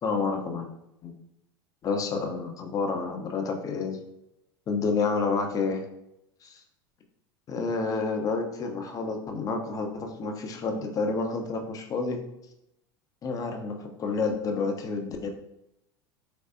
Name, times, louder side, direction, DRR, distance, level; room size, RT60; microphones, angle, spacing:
voice 1, 0.0-0.7 1.0-1.1 1.8-4.0 4.7-5.8 6.4-6.6 7.5-12.2 13.2-15.3, left 4 dB, 30° left, 4 dB, 0.6 m, -29 dB
3.9 x 3.3 x 2.5 m, 0.84 s
figure-of-eight pair, 80°, 13 cm